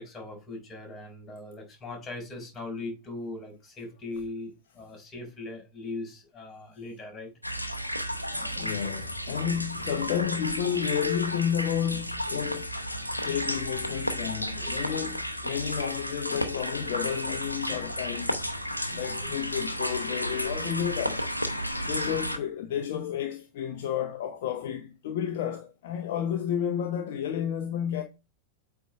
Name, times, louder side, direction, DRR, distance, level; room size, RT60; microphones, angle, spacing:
voice 1, 0.0-7.3 14.4-14.8, left 2 dB, 20° left, 4.2 m, -40 dB
sound 1, 7.4-22.4, equal, 85° left, 0.7 m, -33 dB
voice 2, 8.2-12.7 13.2-18.4 18.9-21.3 21.8-28.0, left 9 dB, 55° left, 0.7 m, -31 dB
8.3 x 3.5 x 4.6 m
figure-of-eight pair, 90°, 0 cm